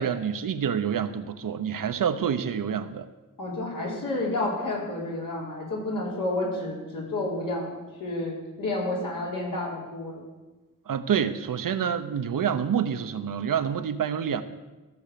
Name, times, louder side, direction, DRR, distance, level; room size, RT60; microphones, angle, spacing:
voice 1, 0.0-3.0 10.9-14.4, right 8 dB, 80° right, 10 dB, 0.8 m, -27 dB
voice 2, 3.4-7.7 8.0-10.2, left 2 dB, 80° left, -3 dB, 4.2 m, -30 dB
15.0 x 6.9 x 6.8 m, 1.1 s
wide cardioid pair, 110°, 32 cm